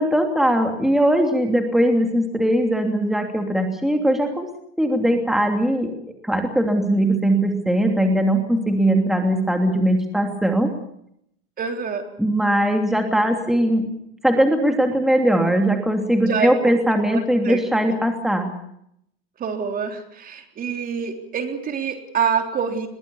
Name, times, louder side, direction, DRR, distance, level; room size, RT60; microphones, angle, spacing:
voice 1, 0.0-4.5 4.8-5.9 6.2-10.7 12.2-13.9 14.2-18.5, right 1 dB, ahead, 4 dB, 2.8 m, -20 dB
voice 2, 11.6-12.1 16.2-17.7 19.4-22.9, right 6 dB, 30° right, 6 dB, 3.5 m, -26 dB
22.0 x 21.0 x 7.0 m, 0.74 s
supercardioid pair, 125°, 31 cm